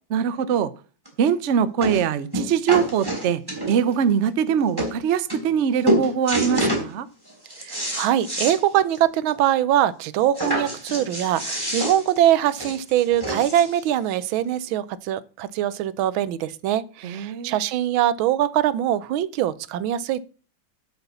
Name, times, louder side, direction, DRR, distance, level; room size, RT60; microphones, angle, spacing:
voice 1, 0.1-0.7 1.2-3.4 3.7-7.1 17.0-17.5, right 8 dB, 65° right, 0.7 m, -22 dB
sound 1, 1.1-1.2 1.8-2.0 2.3-3.9 4.5-4.6 4.8-4.9 5.3-5.6 5.9-6.9 7.3-8.6 8.9-9.0 9.4-9.5 10.3-13.8 14.6-14.7, right 1 dB, 10° right, 3.4 m, -26 dB
voice 2, 7.6-20.2, right 11 dB, 85° right, 1.5 m, -22 dB
7.8 x 7.0 x 6.9 m
omnidirectional pair, 2.2 m